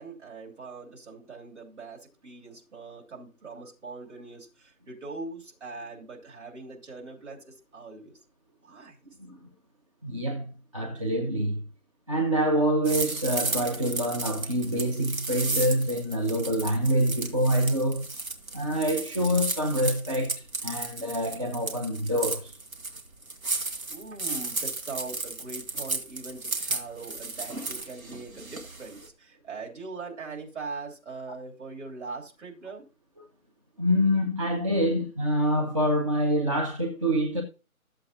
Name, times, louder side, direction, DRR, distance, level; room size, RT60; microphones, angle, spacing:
voice 1, 0.0-8.2 8.6-9.0 23.9-32.8, right 3 dB, 55° right, 3.1 m, -41 dB
voice 2, 10.0-11.6 12.1-18.1 18.5-22.6 33.8-37.4, equal, 25° right, 0.7 m, -26 dB
sound 1, 12.8-29.1, right 3 dB, 75° right, 1.9 m, -34 dB
13.0 x 7.6 x 2.8 m
figure-of-eight pair, 150°, 43 cm